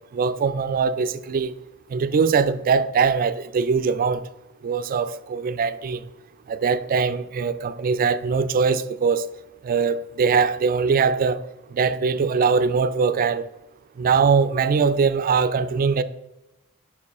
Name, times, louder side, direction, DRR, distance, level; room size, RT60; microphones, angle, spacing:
voice 1, 0.1-1.5 1.9-4.2 4.6-6.0 6.5-9.2 9.6-11.4 11.7-13.4 14.0-16.0, right 5 dB, 40° right, 0.3 m, -21 dB
5.4 x 5.3 x 4.8 m
head